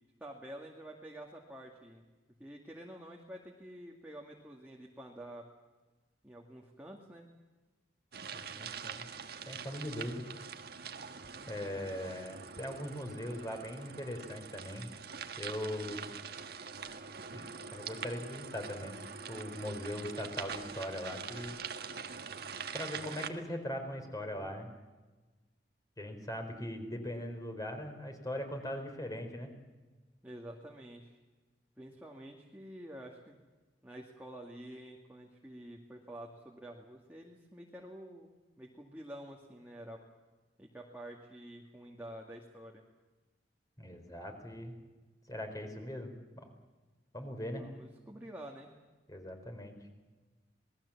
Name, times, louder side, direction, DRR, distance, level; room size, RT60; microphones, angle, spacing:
voice 1, 0.2-2.0 2.4-5.5 6.2-7.3 30.2-31.2 31.8-33.4 33.8-40.0 40.6-42.8 47.6-48.7, right 1 dB, 10° right, -1 dB, 2.2 m, -49 dB
sound 1, 8.1-23.3, right 6 dB, 65° right, 1.5 m, -44 dB
voice 2, 8.3-9.1 9.5-10.3 11.5-14.9 15.4-16.1 17.3-19.0 19.3-21.5 22.7-24.7 26.0-29.5 43.8-44.7 45.3-46.5 47.1-47.6 49.1-49.7, left 1 dB, 20° left, 5 dB, 4.2 m, -40 dB
27.0 x 19.5 x 7.3 m, 1.2 s
head